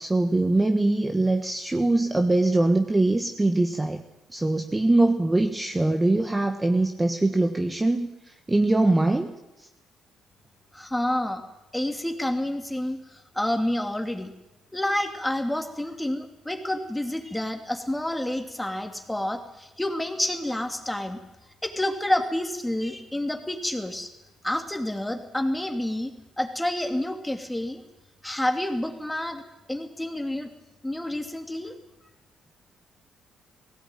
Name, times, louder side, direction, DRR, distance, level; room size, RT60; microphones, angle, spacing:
voice 1, 0.0-4.0 4.3-8.1 8.5-9.3, right 2 dB, 15° right, 5 dB, 1.4 m, -22 dB
voice 2, 10.7-11.4 11.7-14.3 14.7-21.2 21.6-24.1 24.4-27.8 28.2-29.4 29.7-30.5 30.8-31.8, left 1 dB, 10° left, 5 dB, 2.7 m, -29 dB
18.0 x 16.5 x 9.2 m, 0.97 s
cardioid pair, 90°, 0 cm